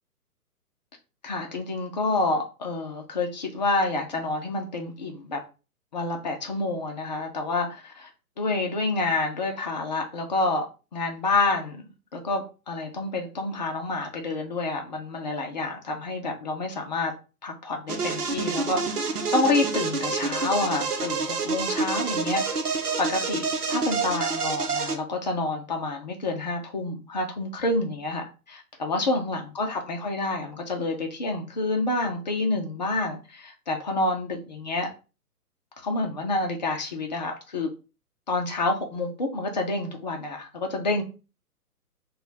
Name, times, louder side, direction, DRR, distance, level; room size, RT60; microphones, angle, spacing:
voice 1, 1.2-5.4 5.9-8.1 8.4-10.6 10.9-11.8 12.1-17.1 17.4-19.0 19.3-22.6 23.0-34.9 35.8-37.7 38.3-41.0, left 2 dB, 30° left, 0.5 m, -28 dB
sound 1, 17.9-25.0, right 4 dB, 75° right, 0.9 m, -28 dB
3.0 x 2.3 x 3.9 m
figure-of-eight pair, 130°, 47 cm